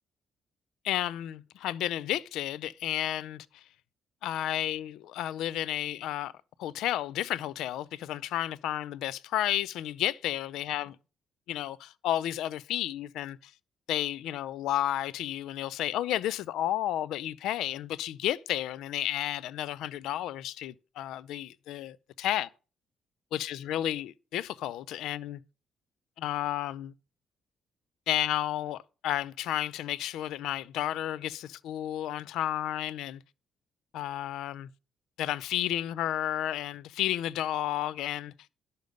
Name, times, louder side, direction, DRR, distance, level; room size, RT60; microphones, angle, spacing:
voice 1, 0.8-3.6 4.2-6.3 6.6-10.9 11.5-13.5 13.9-22.5 23.3-25.4 26.2-26.9 28.1-33.2 33.9-34.7 35.2-38.3, left 12 dB, 85° left, 0.5 m, -32 dB
10.5 x 6.8 x 5.1 m
cardioid pair, 90°, 0 cm